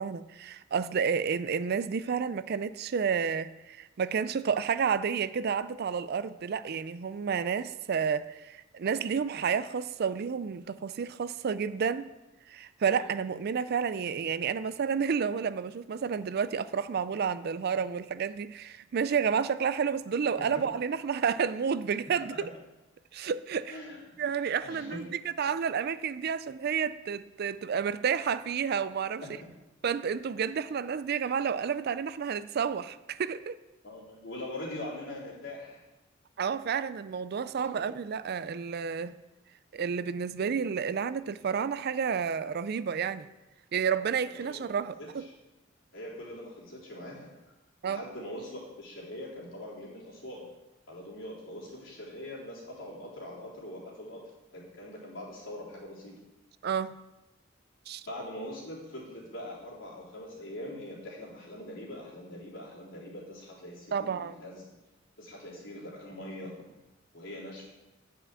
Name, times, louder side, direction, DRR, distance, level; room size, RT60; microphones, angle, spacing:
voice 1, 0.0-12.1 12.5-22.4 23.1-23.8 24.2-29.2 29.8-33.6 36.4-39.2 39.7-43.3 43.7-45.3 47.8-48.0 56.6-57.0 57.9-58.1 63.9-64.3, right 6 dB, 55° right, 0.4 m, -30 dB
voice 2, 23.7-24.2 24.6-25.1 29.2-29.5 33.8-35.8 37.6-37.9 44.2-44.7 45.0-45.3 45.9-47.3 47.8-50.5 50.9-54.2 54.5-56.1 58.1-64.7 65.2-66.5 67.1-67.6, left 1 dB, 75° left, 3.5 m, -42 dB
9.5 x 5.8 x 7.5 m
head